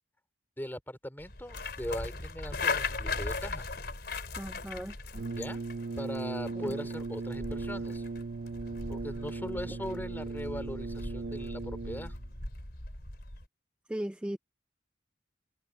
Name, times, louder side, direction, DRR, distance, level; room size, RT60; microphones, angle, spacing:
voice 1, 0.6-3.7 5.3-5.6 6.0-8.1 8.9-12.2, equal, 10° left, 4.7 m, -40 dB
sound 1, 1.2-13.5, left 3 dB, 55° left, 4.3 m, -39 dB
voice 2, 4.4-5.0 13.9-14.4, right 1 dB, 5° right, 0.3 m, -36 dB
Brass instrument, 5.1-12.3, right 3 dB, 60° right, 0.5 m, -38 dB
head